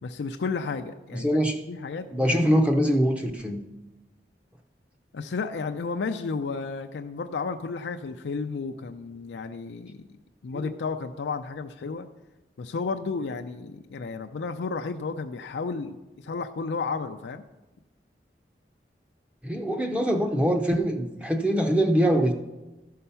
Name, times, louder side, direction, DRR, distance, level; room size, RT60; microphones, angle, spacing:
voice 1, 0.0-1.4 1.7-2.3 5.1-10.1 10.4-12.1 12.6-17.4, left 4 dB, 85° left, 6 dB, 0.4 m, -32 dB
voice 2, 1.1-1.6 2.1-3.6 10.5-10.7 19.4-22.3, equal, 5° right, 3 dB, 0.6 m, -23 dB
13.0 x 5.7 x 5.6 m, 1.1 s
head